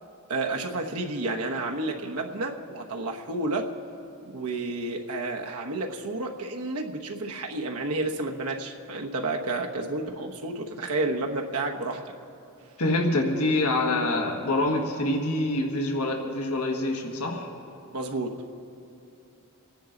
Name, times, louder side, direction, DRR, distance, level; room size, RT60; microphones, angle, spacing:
voice 1, 0.3-3.7 4.3-12.0 17.9-18.4, right 2 dB, 80° right, 2 dB, 1.1 m, -30 dB
voice 2, 12.8-17.5, left 2 dB, 90° left, 2 dB, 1.6 m, -26 dB
26.5 x 10.5 x 3.9 m, 2.7 s
head